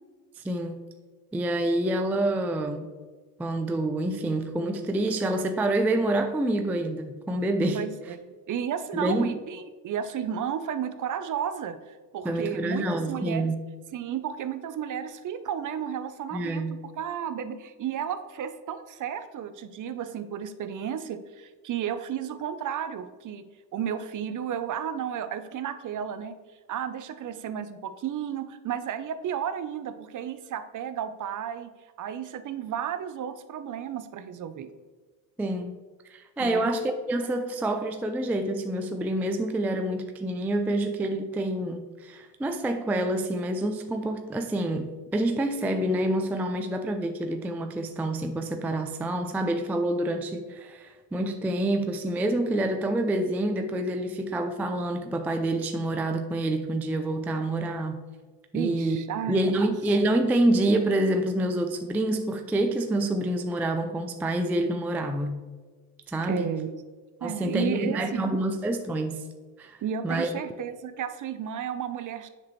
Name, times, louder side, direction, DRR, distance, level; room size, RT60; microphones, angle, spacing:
voice 1, 0.4-0.8 1.3-2.9 3.4-7.8 8.9-9.3 12.2-13.6 16.3-16.7 35.4-35.8 36.1-58.0 58.5-59.0 59.3-65.4 66.1-66.5 67.2-69.3 69.6-70.3, right 1 dB, 5° right, 5 dB, 0.3 m, -27 dB
voice 2, 7.7-13.5 13.9-16.7 17.0-23.4 23.7-26.4 26.7-31.7 32.0-34.7 36.4-36.7 58.5-59.7 66.2-66.7 67.2-68.3 69.8-72.3, right 8 dB, 40° right, 11 dB, 0.6 m, -33 dB
7.3 x 6.1 x 3.1 m, 1.4 s
supercardioid pair, 80°, 49 cm